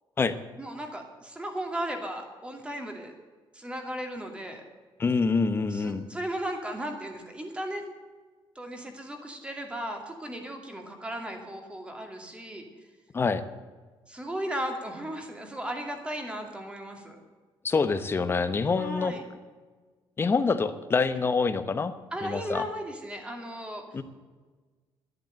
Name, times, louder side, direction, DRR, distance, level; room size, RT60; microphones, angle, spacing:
voice 1, 0.6-3.1 3.5-4.6 5.7-7.8 8.5-12.7 14.1-17.2 18.8-19.2 22.1-23.8, right 1 dB, 10° right, 3 dB, 2.5 m, -36 dB
voice 2, 5.0-6.1 13.1-13.4 17.6-19.1 20.2-21.9 22.2-22.6 23.9-24.0, left 4 dB, 25° left, 11 dB, 0.9 m, -26 dB
11.5 x 10.5 x 9.1 m, 1.4 s
cardioid pair, 145°, 9 cm